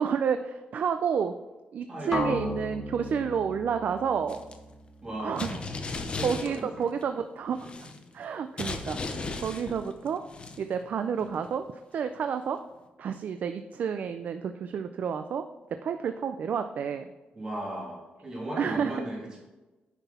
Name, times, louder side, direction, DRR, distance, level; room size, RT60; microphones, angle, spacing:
voice 1, 0.0-1.3 1.7-4.4 5.2-5.5 6.2-7.7 8.1-10.2 10.6-11.6 11.9-12.6 13.0-15.4 15.8-17.1 18.6-19.0, right 7 dB, 60° right, 8 dB, 0.4 m, -30 dB
voice 2, 1.9-2.5 5.0-5.7 6.1-6.9 17.3-19.4, right 1 dB, 25° right, -4 dB, 3.1 m, -37 dB
sound 1, 2.1-6.1, left 2 dB, 15° left, 1.3 m, -36 dB
sound 2, 4.3-4.6 5.4-7.0 7.5-8.2 8.6-10.9 11.2-11.5, left 3 dB, 35° left, 0.8 m, -36 dB
9.1 x 6.0 x 4.2 m, 1.1 s
wide cardioid pair, 135°, 3 cm